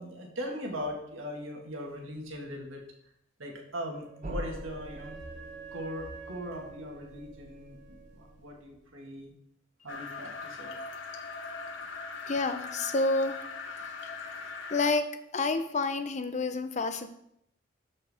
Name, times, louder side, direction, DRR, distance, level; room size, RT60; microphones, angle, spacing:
voice 1, 0.0-2.8 3.4-5.2 5.7-7.8 8.1-9.3 9.8-10.7, equal, 85° right, 0 dB, 1.8 m, -39 dB
Wind instrument woodwind instrument, 3.7-8.3, right 6 dB, 60° right, 2.5 m, -49 dB
sound 1, 4.2-8.9, right 1 dB, 40° right, 0.8 m, -44 dB
sound 2, 9.9-14.9, left 4 dB, 70° left, 0.8 m, -40 dB
voice 2, 12.3-13.4 14.0-14.1 14.7-15.1 15.3-17.1, left 3 dB, 35° left, 9 dB, 0.6 m, -29 dB
12.5 x 4.7 x 3.5 m, 0.76 s
head